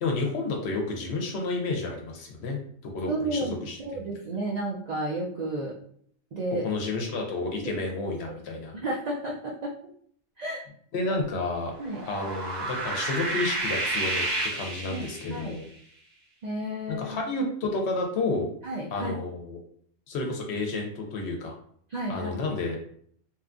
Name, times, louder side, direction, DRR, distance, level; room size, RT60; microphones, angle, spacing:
voice 1, 0.0-2.6 2.8-3.8 6.6-8.7 10.9-11.7 12.1-15.6 16.9-18.5 18.9-19.6 20.1-21.5 22.1-22.8, left 3 dB, 65° left, 1 dB, 0.8 m, -30 dB
voice 2, 3.1-5.7 6.3-6.6 7.6-8.4 8.7-9.7 10.4-10.6 11.8-12.0 14.9-15.6 16.4-17.3 18.6-19.2 21.9-22.3, right 1 dB, 80° right, -3 dB, 0.3 m, -32 dB
sound 1, 11.8-15.5, right 2 dB, 45° right, 0.7 m, -30 dB
2.8 x 2.3 x 2.4 m, 0.62 s
omnidirectional pair, 1.3 m